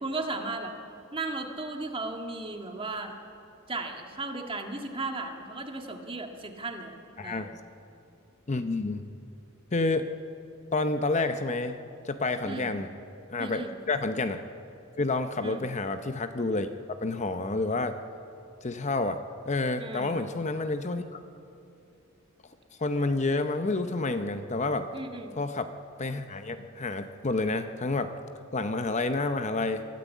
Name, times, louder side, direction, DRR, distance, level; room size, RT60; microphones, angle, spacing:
voice 1, 0.0-0.7 1.1-3.2 3.7-7.0 7.2-7.5 12.4-12.7 13.4-13.7 15.4-15.6 19.8-20.2 24.9-25.3, right 2 dB, 25° right, 3 dB, 1.8 m, -35 dB
voice 2, 7.2-7.5 8.5-9.0 9.7-10.1 10.7-11.8 12.0-12.9 13.3-14.4 15.0-16.7 17.0-18.0 18.6-19.2 19.4-21.2 22.8-24.9 25.4-25.7 26.0-28.1 28.5-29.8, left 3 dB, 35° left, 9 dB, 0.7 m, -29 dB
24.0 x 13.5 x 8.4 m, 2.7 s
head